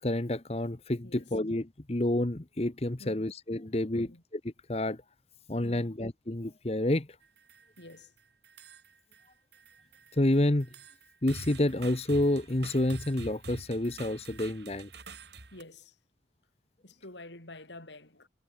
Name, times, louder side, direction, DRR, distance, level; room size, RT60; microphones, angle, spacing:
voice 1, 0.0-4.1 4.7-5.0 5.5-7.1 10.1-10.7 11.2-14.9, left 1 dB, 35° left, 1.0 m, -29 dB
voice 2, 3.0-3.3 3.9-4.2 5.6-6.0 7.8-8.1 15.5-15.9 16.8-18.3, left 2 dB, 90° left, 5.9 m, -48 dB
sound 1, 7.2-8.0 8.4-9.3 9.5-15.6, right 3 dB, 75° right, 4.6 m, -47 dB
head